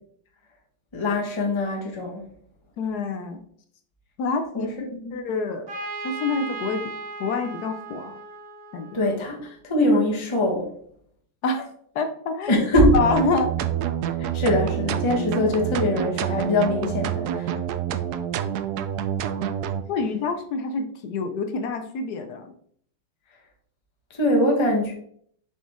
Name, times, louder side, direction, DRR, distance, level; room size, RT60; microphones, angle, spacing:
voice 1, 0.9-2.2 4.5-5.1 8.9-10.7 12.5-12.9 14.2-17.6 24.1-24.9, left 1 dB, 20° left, -1 dB, 0.9 m, -23 dB
voice 2, 2.8-3.4 4.2-5.7 6.0-6.9 7.2-8.2 8.7-9.0 11.4-13.5 19.9-22.5, left 4 dB, 70° left, 7 dB, 1.0 m, -27 dB
Trumpet, 5.7-9.4, right 3 dB, 45° right, 0.8 m, -37 dB
sound 1, 12.8-19.8, right 9 dB, 85° right, 0.8 m, -27 dB
7.2 x 4.3 x 3.5 m, 0.62 s
omnidirectional pair, 2.2 m